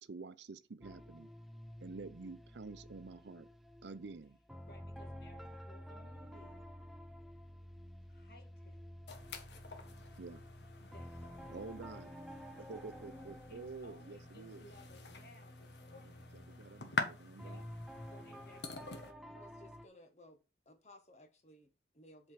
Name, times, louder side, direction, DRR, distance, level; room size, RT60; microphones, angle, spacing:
voice 1, 0.0-1.3 1.8-3.5 3.8-4.4 10.2-10.4 11.5-12.1 12.6-14.7 15.9-16.0 16.3-17.6, right 4 dB, 85° right, 0.6 m, -49 dB
sound 1, 0.8-19.9, equal, ahead, 0.6 m, -52 dB
voice 2, 4.7-6.7 8.1-8.9 10.8-11.5 13.5-16.4 17.4-17.7 18.0-19.1, left 1 dB, 60° left, 2.2 m, -61 dB
sound 2, 9.1-19.1, left 3 dB, 80° left, 1.3 m, -46 dB
voice 3, 19.3-20.4 20.6-22.3, left 1 dB, 40° left, 1.5 m, -59 dB
7.8 x 4.5 x 5.7 m
head